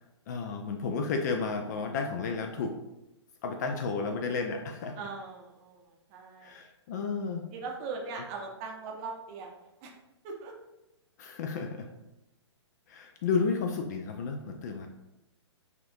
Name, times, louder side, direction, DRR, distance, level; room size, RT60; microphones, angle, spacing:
voice 1, 0.3-2.8 3.4-5.0 6.4-7.4 11.2-11.9 12.9-14.9, left 4 dB, 40° left, 4 dB, 0.4 m, -32 dB
voice 2, 5.0-6.6 7.5-10.0 10.2-10.5, right 4 dB, 30° right, 0 dB, 0.7 m, -40 dB
5.7 x 2.5 x 2.6 m, 0.93 s
figure-of-eight pair, 120°, 15 cm